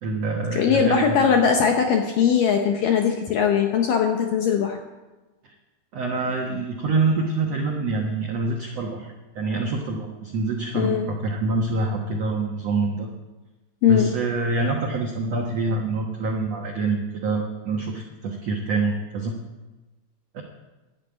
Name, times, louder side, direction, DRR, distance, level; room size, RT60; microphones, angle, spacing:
voice 1, 0.0-1.3 5.4-5.5 5.9-13.1 13.9-19.4 20.3-20.4, right 3 dB, 85° right, 1 dB, 1.4 m, -26 dB
voice 2, 0.5-4.8 10.7-11.1 13.8-14.1, left 7 dB, 75° left, 3 dB, 2.0 m, -20 dB
12.0 x 9.2 x 8.7 m, 1.1 s
omnidirectional pair, 5.0 m